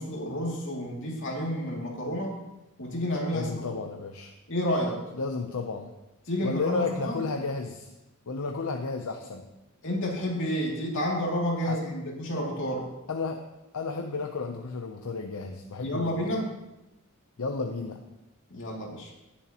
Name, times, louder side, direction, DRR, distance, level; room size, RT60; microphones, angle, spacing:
voice 1, 0.0-2.3 2.8-3.5 4.5-5.0 6.3-7.2 9.8-12.9 15.8-16.5 18.5-19.1, equal, 60° left, -2 dB, 2.6 m, -30 dB
voice 2, 3.3-4.3 5.1-5.9 6.4-7.9 8.3-9.5 11.6-11.8 13.1-13.5 13.7-16.3 17.4-18.0, left 3 dB, 80° left, 4 dB, 0.7 m, -32 dB
18.5 x 7.3 x 3.0 m, 0.95 s
head